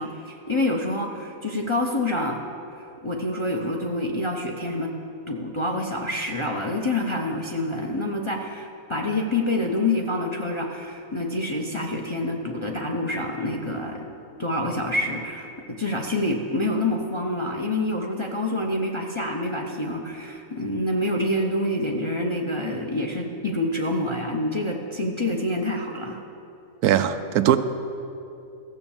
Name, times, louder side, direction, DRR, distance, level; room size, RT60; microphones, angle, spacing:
voice 1, 0.0-2.4 3.0-4.9 5.3-14.1 14.4-26.2, left 1 dB, 25° left, 0 dB, 0.7 m, -27 dB
voice 2, 26.8-27.6, right 11 dB, 80° right, 10 dB, 1.1 m, -20 dB
15.0 x 7.1 x 7.2 m, 2.7 s
omnidirectional pair, 1.6 m